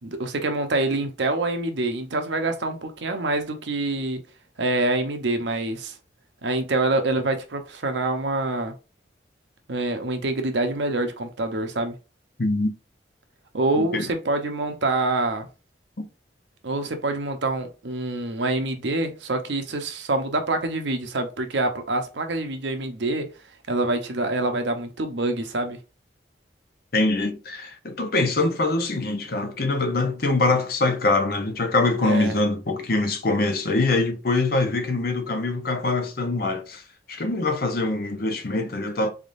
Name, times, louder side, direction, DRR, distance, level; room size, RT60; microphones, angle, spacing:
voice 1, 0.0-4.2 4.6-6.0 6.4-8.7 9.7-12.0 13.5-15.5 16.6-23.3 23.7-25.8 32.0-32.3, right 2 dB, 80° right, 0.8 m, -26 dB
voice 2, 12.4-12.7 13.8-14.1 16.0-16.1 26.9-36.8 37.1-39.1, left 2 dB, 55° left, 0.7 m, -24 dB
3.9 x 3.6 x 2.5 m
head